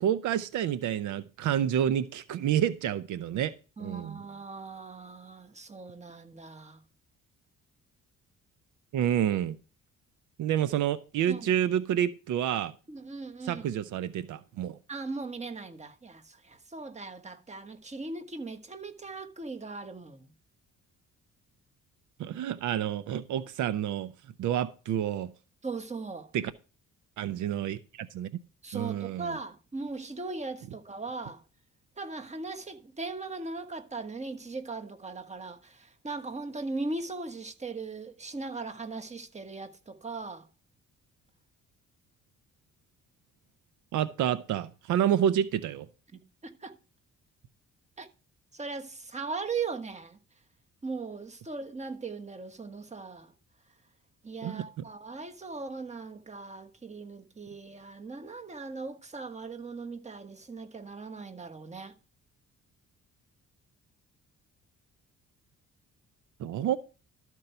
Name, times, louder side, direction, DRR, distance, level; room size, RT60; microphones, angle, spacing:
voice 1, 0.0-3.5 3.8-4.2 8.9-9.6 10.4-12.7 13.4-14.8 22.2-24.1 24.4-25.3 26.3-26.5 27.2-28.3 28.7-29.3 43.9-45.9 54.4-54.7 66.4-66.8, right 10 dB, 80° right, 0.7 m, -29 dB
voice 2, 3.8-6.8 11.3-11.5 12.9-13.7 14.9-20.3 25.6-26.3 28.6-31.4 32.0-40.5 46.1-46.8 48.0-48.1 48.5-50.2 50.8-53.3 54.2-61.9, right 3 dB, 25° right, 1.4 m, -39 dB
13.0 x 4.6 x 6.7 m
cardioid pair, 90°, 30 cm